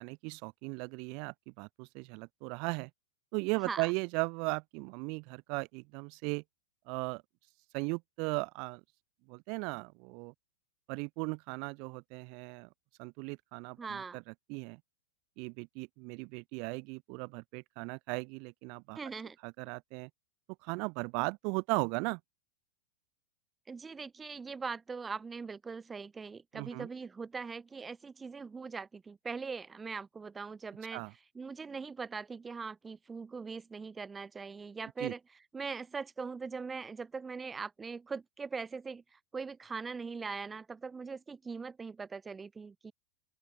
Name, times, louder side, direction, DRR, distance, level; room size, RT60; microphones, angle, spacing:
voice 1, 0.0-2.9 3.3-6.4 6.9-7.2 7.7-8.8 9.3-10.3 10.9-12.7 13.0-14.8 15.4-19.0 19.4-20.1 20.6-22.2 26.5-26.9 30.9-31.1 35.0-35.1, right 33 dB, 45° right, 1.3 m, -37 dB
voice 2, 13.8-14.2 18.9-19.4 23.7-31.0 31.3-35.2 35.5-39.0 39.3-42.9, right 5 dB, 15° right, 1.5 m, -41 dB
open air
figure-of-eight pair, 90°, 0 cm